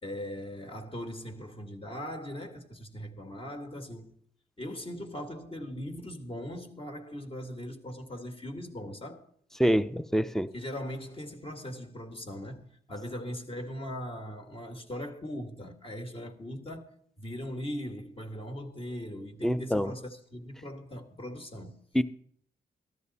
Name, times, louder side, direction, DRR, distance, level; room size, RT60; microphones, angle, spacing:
voice 1, 0.0-4.1 4.6-9.3 10.5-16.9 17.2-21.8, equal, 30° left, 1.9 m, -40 dB
voice 2, 9.6-10.5 19.4-19.9 21.9-22.0, equal, ahead, 0.6 m, -25 dB
13.5 x 12.5 x 4.2 m
cardioid pair, 75°, 18 cm